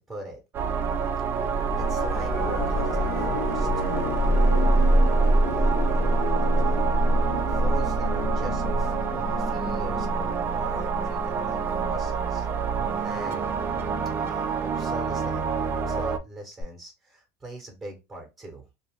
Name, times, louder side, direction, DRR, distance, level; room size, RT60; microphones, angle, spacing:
voice 1, 0.1-0.4 1.7-6.8 7.5-11.6 11.8-12.5 13.0-13.4 14.1-18.7, right 1 dB, 10° right, 1 dB, 1.0 m, -42 dB
sound 1, 0.5-16.2, right 6 dB, 30° right, 0.4 m, -28 dB
sound 2, 1.4-14.3 16.6-16.7, equal, 65° left, 0.9 m, -26 dB
2.4 x 2.3 x 3.4 m, 0.26 s
supercardioid pair, 120°, 8 cm